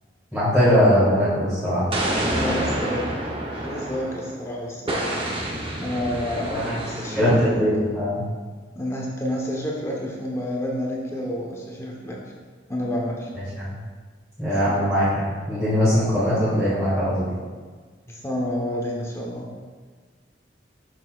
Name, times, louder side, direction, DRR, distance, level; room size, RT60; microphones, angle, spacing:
voice 1, 0.3-1.9 6.5-8.2 13.5-13.7 14.4-17.3, equal, ahead, -14 dB, 1.9 m, -21 dB
Explosion, 1.9-4.4 4.9-7.4, right 1 dB, 30° right, 0.8 m, -28 dB
voice 2, 2.3-3.1 3.6-5.5 5.8-7.8 8.7-12.2 12.7-13.3 14.6-14.9 18.1-19.5, left 1 dB, 15° left, -3 dB, 1.1 m, -29 dB
6.7 x 6.4 x 2.4 m, 1.5 s
head